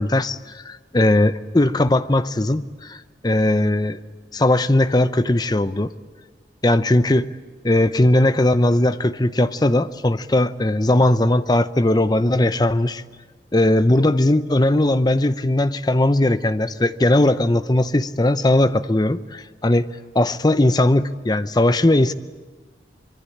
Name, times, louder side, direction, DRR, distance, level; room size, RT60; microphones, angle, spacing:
voice 1, 0.0-3.0 3.2-4.0 4.3-5.9 6.6-7.3 7.6-13.0 13.5-19.9 20.1-22.1, left 1 dB, 25° left, 13 dB, 0.7 m, -18 dB
25.0 x 23.0 x 8.6 m, 1.4 s
head